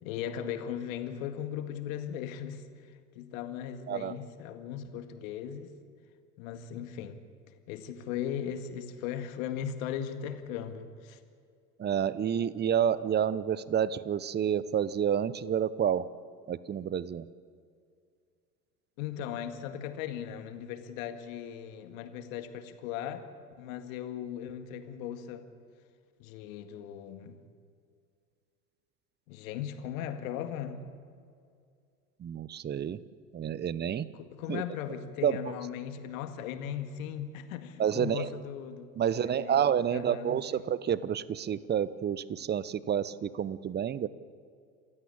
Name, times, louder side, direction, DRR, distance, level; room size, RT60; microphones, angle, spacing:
voice 1, 0.0-5.8 6.4-7.2 7.5-11.2 19.0-23.3 23.6-25.5 26.2-27.4 29.3-30.8 34.1-39.6 39.9-40.6, left 9 dB, 60° left, 8 dB, 2.1 m, -38 dB
voice 2, 11.8-16.1 16.5-17.2 32.2-33.0 33.3-34.1 34.5-34.6 35.2-35.5 37.8-38.3 39.0-44.1, right 9 dB, 20° right, 18 dB, 0.8 m, -29 dB
28.0 x 15.5 x 8.7 m, 2.2 s
figure-of-eight pair, 80°, 46 cm